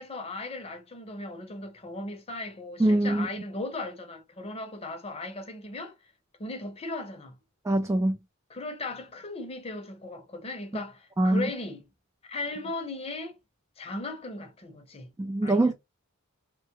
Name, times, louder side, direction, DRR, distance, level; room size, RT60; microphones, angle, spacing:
voice 1, 0.0-5.9 6.4-7.4 8.5-11.9 12.3-13.4 13.8-15.1 15.4-15.7, left 2 dB, 30° left, 0.7 m, -37 dB
voice 2, 2.8-3.3 7.7-8.2 11.2-11.5 15.2-15.7, right 1 dB, 15° right, 0.3 m, -23 dB
3.2 x 2.2 x 2.9 m
head